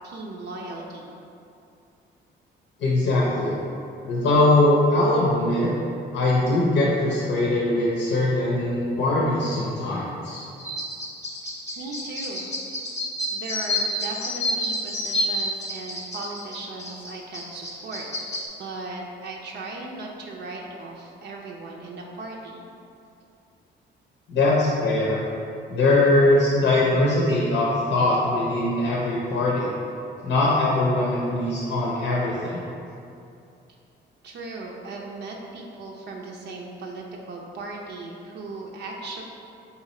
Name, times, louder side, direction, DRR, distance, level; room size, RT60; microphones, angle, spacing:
voice 1, 0.0-1.2 11.8-12.5 13.3-18.1 18.6-22.6 34.2-39.2, right 2 dB, 65° right, -1 dB, 0.5 m, -37 dB
voice 2, 2.8-3.6 4.1-5.7 6.1-10.4 24.3-25.2 25.7-29.7 30.2-32.6, left 2 dB, 80° left, -5 dB, 0.7 m, -21 dB
sound 1, 10.6-18.5, left 1 dB, 15° left, 0.8 m, -29 dB
3.7 x 2.9 x 4.2 m, 2.6 s
cardioid pair, 115°, 19 cm